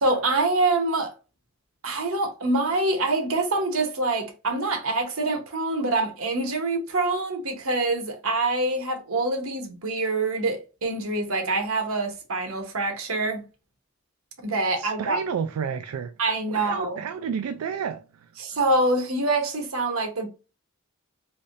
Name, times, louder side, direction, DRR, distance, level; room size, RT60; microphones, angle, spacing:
voice 1, 0.0-1.1 1.8-13.4 14.4-15.2 16.2-17.0 18.4-20.3, right 2 dB, 70° right, 1.0 m, -25 dB
voice 2, 14.8-16.1 16.5-18.3, right 7 dB, 85° right, 0.3 m, -31 dB
3.4 x 2.7 x 2.5 m
head